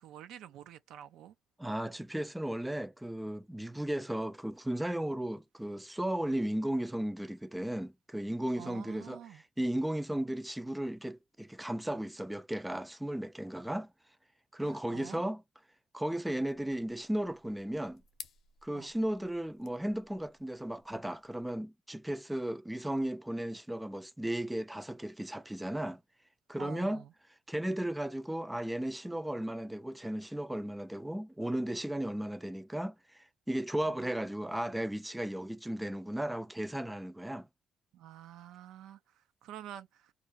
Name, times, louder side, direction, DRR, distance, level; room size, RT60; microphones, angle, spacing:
voice 1, 0.0-1.4 8.6-9.4 14.6-15.2 18.7-18.9 26.6-27.1 37.9-40.1, right 10 dB, 90° right, 0.4 m, -48 dB
voice 2, 1.6-9.2 9.6-13.9 14.5-15.4 15.9-18.0 18.6-26.0 26.5-27.0 27.5-37.5, right 1 dB, 5° right, 0.3 m, -35 dB
sound 1, 16.5-21.5, left 7 dB, 70° left, 0.6 m, -56 dB
2.5 x 2.1 x 2.6 m
cardioid pair, 90°, 0 cm